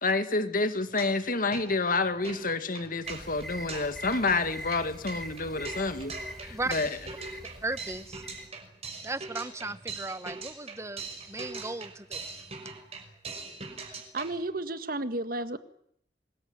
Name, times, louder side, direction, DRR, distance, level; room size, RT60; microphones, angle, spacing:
voice 1, 0.0-6.1 6.4-6.9, left 3 dB, 50° left, 2.1 m, -29 dB
sound 1, 0.8-1.3 1.5-14.4, right 4 dB, 35° right, 5.6 m, -42 dB
sound 2, 3.0-8.5, equal, ahead, 2.4 m, -43 dB
voice 2, 7.6-8.2 9.0-12.4, right 2 dB, 15° right, 1.1 m, -36 dB
voice 3, 13.9-15.6, right 2 dB, 55° right, 1.8 m, -33 dB
25.0 x 20.5 x 9.6 m
head